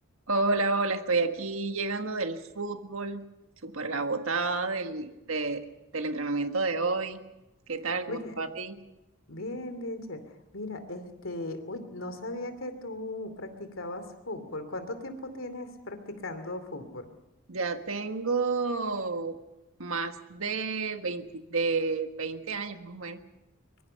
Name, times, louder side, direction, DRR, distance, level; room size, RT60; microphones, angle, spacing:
voice 1, 0.3-3.3 3.6-5.7 5.9-7.2 7.7-8.8 17.5-19.4 19.8-23.2, right 3 dB, 80° right, 7 dB, 1.6 m, -30 dB
voice 2, 9.3-10.2 10.5-17.1, left 2 dB, 75° left, 8 dB, 2.8 m, -37 dB
24.5 x 22.0 x 5.8 m, 0.98 s
head